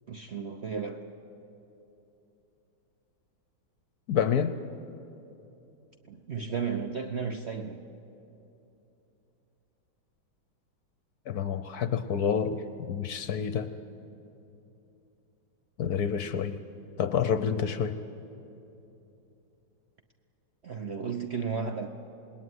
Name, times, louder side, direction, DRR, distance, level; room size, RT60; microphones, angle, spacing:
voice 1, 0.1-1.1 6.1-7.8 20.6-21.9, right 5 dB, 50° right, 5 dB, 0.8 m, -34 dB
voice 2, 4.1-4.6 11.3-13.7 15.8-16.6 17.0-18.0, left 7 dB, 60° left, 11 dB, 1.1 m, -28 dB
27.0 x 19.5 x 9.6 m, 2.9 s
omnidirectional pair, 2.1 m